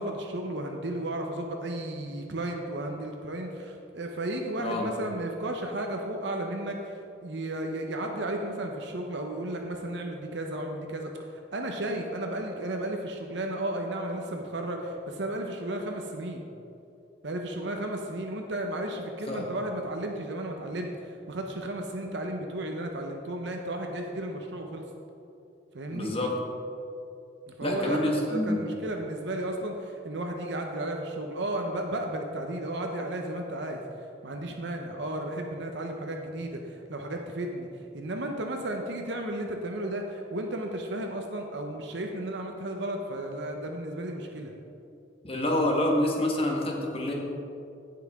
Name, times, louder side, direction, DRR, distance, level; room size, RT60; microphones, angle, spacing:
voice 1, 0.0-16.4 17.2-24.8 25.7-26.1 27.5-28.0 28.3-33.8 34.2-44.5, right 1 dB, 60° right, 3 dB, 0.8 m, -34 dB
voice 2, 25.9-26.3 27.6-28.7 45.2-47.1, left 1 dB, 30° left, 0 dB, 1.4 m, -27 dB
17.0 x 5.8 x 3.6 m, 2.7 s
head